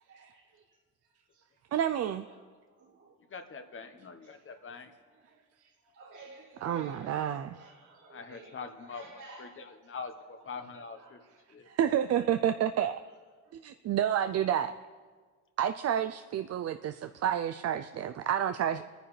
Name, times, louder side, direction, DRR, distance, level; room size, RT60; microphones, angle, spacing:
voice 1, 0.1-0.4 2.0-2.1 2.8-3.1 3.5-3.6 4.5-4.7 5.1-5.2 5.9-9.6 11.0-11.2 11.6-11.8 16.8-16.9, right 3 dB, 85° right, -4 dB, 3.5 m, -52 dB
voice 2, 1.7-2.3 6.6-7.7 11.7-13.0 13.6-14.7 15.6-18.8, right 10 dB, 55° right, 8 dB, 0.5 m, -29 dB
voice 3, 3.3-4.9 8.1-11.2 11.5-11.7, left 5 dB, 45° left, 7 dB, 1.2 m, -44 dB
23.5 x 10.0 x 3.3 m, 1.5 s
cardioid pair, 90°, 30 cm